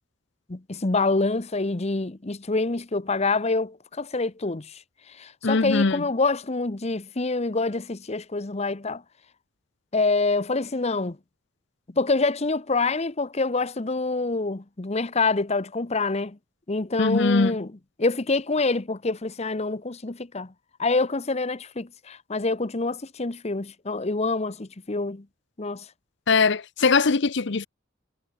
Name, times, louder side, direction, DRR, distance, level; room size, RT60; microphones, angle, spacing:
voice 1, 0.5-4.8 5.2-9.0 9.9-11.2 12.0-16.4 16.7-17.7 18.0-20.5 20.8-25.2 25.6-25.8, left 3 dB, 35° left, 0.9 m, -26 dB
voice 2, 5.4-6.0 17.0-17.6 26.3-27.7, left 4 dB, 60° left, 0.8 m, -21 dB
head